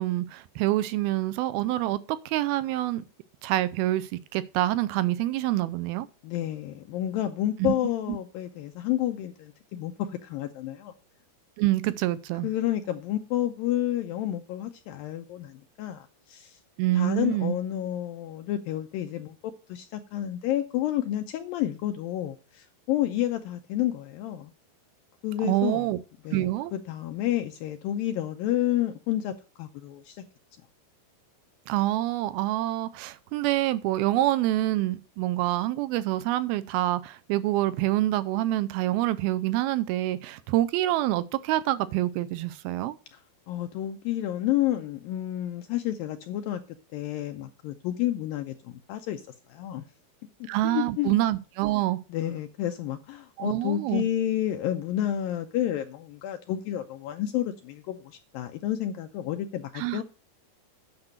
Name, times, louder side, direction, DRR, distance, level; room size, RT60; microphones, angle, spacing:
voice 1, 0.0-2.0 2.3-3.1 3.4-6.1 7.6-7.7 11.6-12.5 16.8-17.6 25.4-26.0 26.3-26.7 31.7-43.0 50.5-52.0 53.4-54.1 59.8-60.0, right 15 dB, 80° right, 2.3 m, -26 dB
voice 2, 6.2-10.9 12.4-16.6 16.9-19.4 19.7-24.5 25.2-25.9 26.2-30.2 43.1-43.2 43.5-46.6 46.9-49.2 49.5-49.8 50.4-51.2 52.1-60.0, left 12 dB, 85° left, 2.1 m, -30 dB
9.7 x 5.9 x 6.5 m
omnidirectional pair, 4.8 m